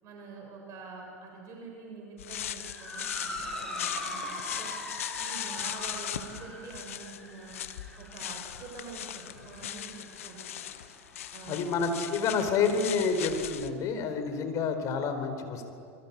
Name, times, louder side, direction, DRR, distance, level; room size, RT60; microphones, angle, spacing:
voice 1, 0.0-4.8 5.2-7.6 8.0-9.9 10.2-10.7 11.3-11.6, right 4 dB, 40° right, 1 dB, 7.5 m, -46 dB
sound 1, 2.2-13.7, left 11 dB, 65° left, 1.2 m, -39 dB
Motor vehicle (road) / Siren, 2.6-11.2, left 1 dB, 5° left, 6.5 m, -42 dB
voice 2, 11.5-15.6, left 5 dB, 40° left, 8 dB, 4.4 m, -29 dB
27.0 x 23.5 x 8.6 m, 2.4 s
figure-of-eight pair, 85°, 8 cm